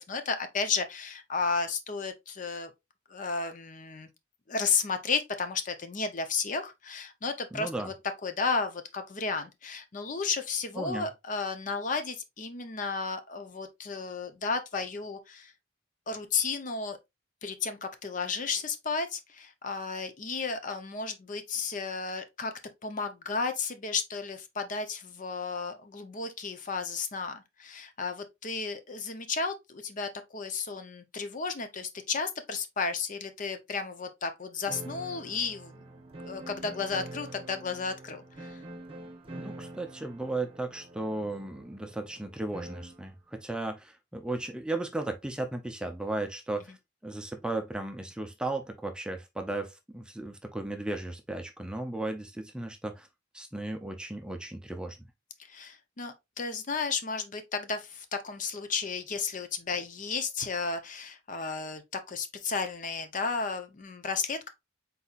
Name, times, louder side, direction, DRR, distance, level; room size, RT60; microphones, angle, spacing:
voice 1, 0.0-2.7 3.1-4.1 4.5-7.9 8.2-15.5 16.1-17.0 17.4-22.5 22.8-35.8 36.2-38.6 55.5-61.8 62.1-64.5, left 4 dB, 45° left, 0.6 m, -33 dB
voice 2, 7.5-7.9 10.7-11.1 39.4-46.8 47.0-53.1 53.3-55.0, right 2 dB, 5° right, 0.4 m, -35 dB
sound 1, 34.6-43.1, right 2 dB, 30° right, 1.0 m, -45 dB
4.1 x 4.0 x 2.4 m
head